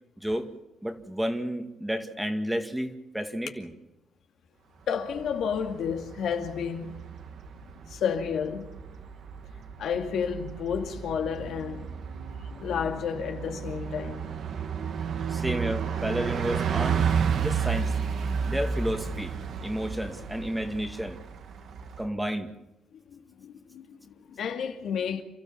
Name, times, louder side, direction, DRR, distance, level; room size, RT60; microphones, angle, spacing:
voice 1, 0.8-3.7 15.3-17.0 17.4-18.0 18.5-19.3 19.6-21.2 22.0-22.5, equal, 5° right, 2.1 m, -31 dB
voice 2, 4.9-7.0 7.9-8.8 9.8-11.9 12.6-14.3 23.1-25.2, left 7 dB, 75° left, 2.4 m, -31 dB
Bus, 5.0-22.1, right 6 dB, 65° right, 2.0 m, -32 dB
29.5 x 13.5 x 7.3 m
cardioid pair, 90°, 0 cm